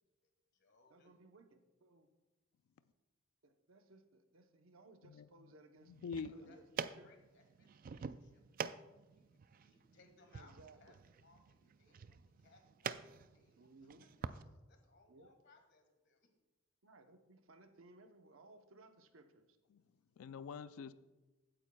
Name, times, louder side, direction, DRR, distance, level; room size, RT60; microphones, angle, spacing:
voice 1, 0.2-1.2 6.3-8.8 9.1-13.7 14.0-16.3, left 3 dB, 55° left, 4 dB, 1.7 m, -68 dB
voice 2, 0.9-2.1 3.4-5.9 6.4-7.1 10.4-11.0 13.6-14.1 15.1-15.3 16.8-19.6, right 2 dB, 75° right, 6 dB, 0.9 m, -62 dB
sound 1, 5.9-14.4, right 6 dB, 40° right, 0.3 m, -47 dB
voice 3, 6.0-6.3 19.7-19.8 20.2-20.9, left 5 dB, 85° left, 14 dB, 0.4 m, -44 dB
15.5 x 8.9 x 2.3 m, 1.1 s
head